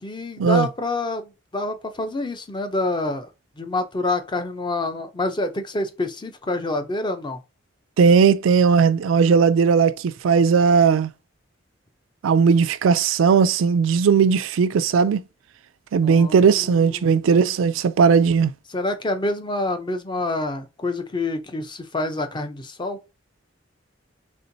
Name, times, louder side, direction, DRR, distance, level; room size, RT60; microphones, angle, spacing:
voice 1, 0.0-3.3 3.6-7.4 16.0-17.1 18.7-23.0, left 2 dB, 25° left, 0.6 m, -27 dB
voice 2, 8.0-11.1 12.2-15.2 15.9-18.5, right 6 dB, 85° right, 0.4 m, -17 dB
4.3 x 3.6 x 2.6 m
head